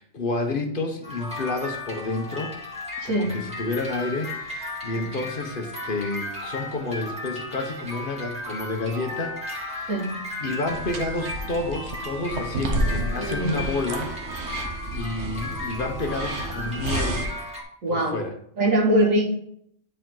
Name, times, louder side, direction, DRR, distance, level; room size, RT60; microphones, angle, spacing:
voice 1, 0.0-2.6 3.0-10.0 10.4-14.1 14.4-17.3 17.9-18.3, left 3 dB, 45° left, 4 dB, 1.1 m, -30 dB
sound 1, 1.0-17.6, left 1 dB, 5° right, 1.8 m, -35 dB
voice 2, 3.0-3.4 5.0-5.1 9.9-10.2 13.2-13.6 17.8-18.1 18.6-19.3, right 1 dB, 90° right, -3 dB, 2.5 m, -22 dB
sound 2, 10.7-17.3, right 2 dB, 65° right, 1.2 m, -31 dB
9.8 x 5.0 x 3.8 m, 0.69 s
omnidirectional pair, 1.3 m